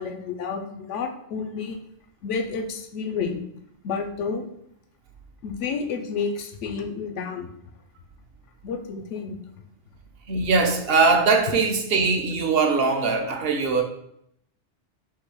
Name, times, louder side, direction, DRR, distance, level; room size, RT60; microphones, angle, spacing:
voice 1, 0.0-1.8 2.2-3.4 3.8-4.5 5.4-7.5 8.6-9.4, left 5 dB, 90° left, 0.9 m, -30 dB
voice 2, 10.3-13.8, right 4 dB, 60° right, 0.8 m, -21 dB
3.7 x 2.6 x 4.6 m
omnidirectional pair, 1.2 m